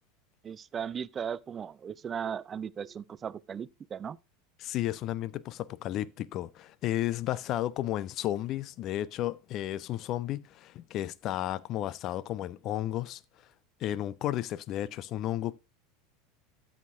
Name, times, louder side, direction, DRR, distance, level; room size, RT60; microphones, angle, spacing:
voice 1, 0.4-4.2, right 7 dB, 25° right, 0.4 m, -37 dB
voice 2, 4.6-13.2 13.8-15.6, left 13 dB, 40° left, 0.5 m, -33 dB
12.5 x 6.5 x 3.5 m
figure-of-eight pair, 80°, 0 cm